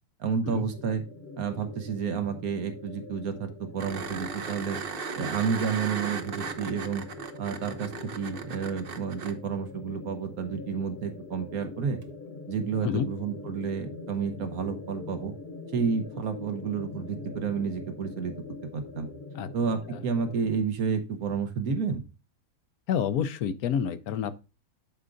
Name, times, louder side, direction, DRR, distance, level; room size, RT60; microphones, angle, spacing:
voice 1, 0.2-1.0 1.4-4.8 5.2-7.0 7.4-12.0 12.5-15.3 15.7-18.3 18.7-19.1 19.5-22.0, right 6 dB, 75° right, 1.4 m, -30 dB
sound 1, 0.7-20.5, left 3 dB, 45° left, 1.1 m, -43 dB
sound 2, 3.8-9.3 12.0-12.1, right 5 dB, 50° right, 0.8 m, -36 dB
voice 2, 22.9-24.4, left 8 dB, 80° left, 1.1 m, -28 dB
11.0 x 4.8 x 2.5 m
omnidirectional pair, 1.6 m